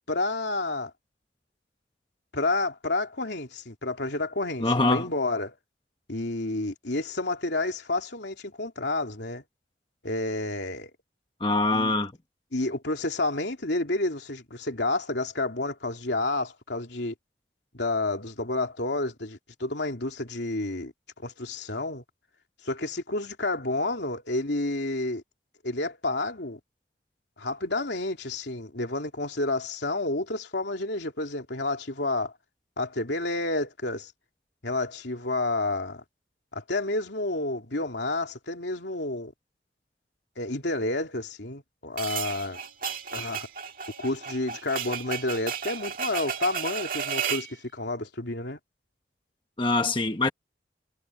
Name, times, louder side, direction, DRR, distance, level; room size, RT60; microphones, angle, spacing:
voice 1, 0.1-0.9 2.3-5.5 6.1-9.4 10.0-10.9 11.7-11.9 12.5-17.1 17.7-22.0 22.6-25.2 25.6-26.6 27.4-32.3 32.8-34.1 34.6-36.0 36.5-39.3 40.4-42.6 43.1-43.5 44.0-48.6, left 2 dB, 75° left, 3.0 m, -30 dB
voice 2, 4.6-5.1 11.4-12.1 49.6-50.3, left 2 dB, 25° left, 1.1 m, -24 dB
sound 1, 42.0-47.5, right 7 dB, 50° right, 1.9 m, -33 dB
head